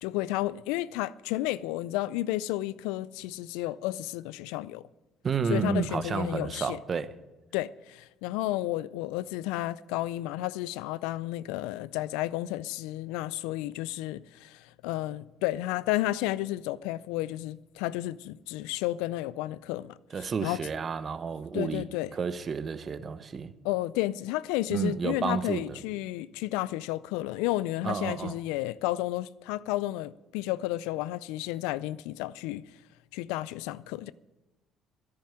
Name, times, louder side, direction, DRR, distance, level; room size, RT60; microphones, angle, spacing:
voice 1, 0.0-4.8 5.5-6.8 7.5-20.6 21.5-22.1 23.6-32.6 33.1-34.1, left 16 dB, 80° left, 0.3 m, -32 dB
voice 2, 5.2-7.1 20.1-21.8 22.1-23.5 24.7-25.8 27.8-28.3, right 5 dB, 45° right, 0.9 m, -31 dB
10.5 x 8.7 x 9.8 m
hypercardioid pair, 60°, 0 cm